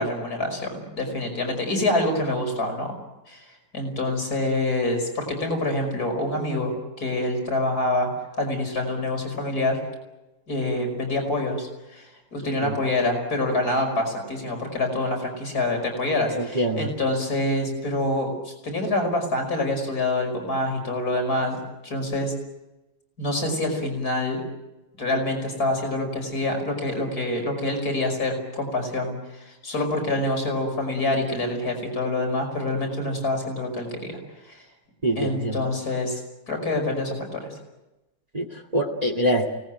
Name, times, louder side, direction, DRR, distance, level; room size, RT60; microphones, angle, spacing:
voice 1, 0.0-2.9 3.3-3.4 3.7-6.7 7.0-8.1 8.4-9.8 10.5-21.6 21.8-22.3 23.2-24.4 25.0-34.2 34.5-34.6 35.2-36.2 36.5-37.5, left 2 dB, 65° left, 3 dB, 6.0 m, -26 dB
voice 2, 16.3-16.9 35.0-35.6 38.3-39.5, equal, 25° right, 2 dB, 2.2 m, -25 dB
29.0 x 19.0 x 9.2 m, 1.0 s
omnidirectional pair, 1.7 m